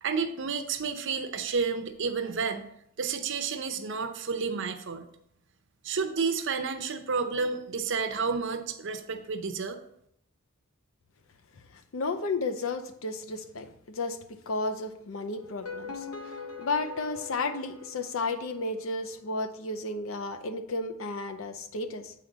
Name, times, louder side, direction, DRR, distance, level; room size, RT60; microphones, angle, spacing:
voice 1, 0.0-2.6 3.0-5.1 5.8-9.8, right 5 dB, 60° right, 8 dB, 0.6 m, -30 dB
voice 2, 11.9-22.1, left 3 dB, 65° left, 8 dB, 0.6 m, -33 dB
sound 1, 15.4-18.6, left 5 dB, 85° left, 1.0 m, -42 dB
7.5 x 4.3 x 3.9 m, 0.73 s
head